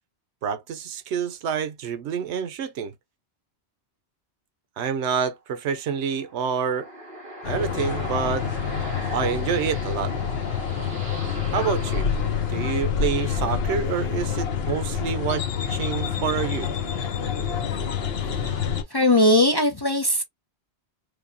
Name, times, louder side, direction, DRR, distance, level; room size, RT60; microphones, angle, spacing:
voice 1, 0.4-2.9 4.8-6.9 7.5-8.5 9.1-10.1 11.5-12.1 12.5-16.7, right 7 dB, 85° right, 1.0 m, -27 dB
sound 1, 5.9-13.5, equal, 50° right, 1.3 m, -39 dB
sound 2, 7.4-18.8, left 7 dB, 65° left, 1.0 m, -27 dB
voice 2, 18.4-20.2, left 1 dB, 30° left, 0.5 m, -20 dB
4.7 x 2.2 x 2.6 m
omnidirectional pair, 1.1 m